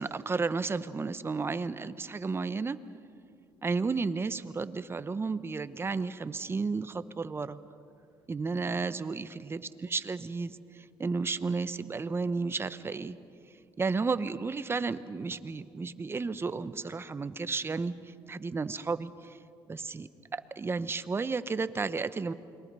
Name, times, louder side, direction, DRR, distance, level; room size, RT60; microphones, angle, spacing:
voice 1, 0.0-2.8 3.6-7.6 8.3-13.2 13.8-19.4 19.7-22.3, right 4 dB, 25° right, 13 dB, 0.9 m, -33 dB
29.0 x 22.5 x 5.5 m, 2.6 s
cardioid pair, 100°, 10 cm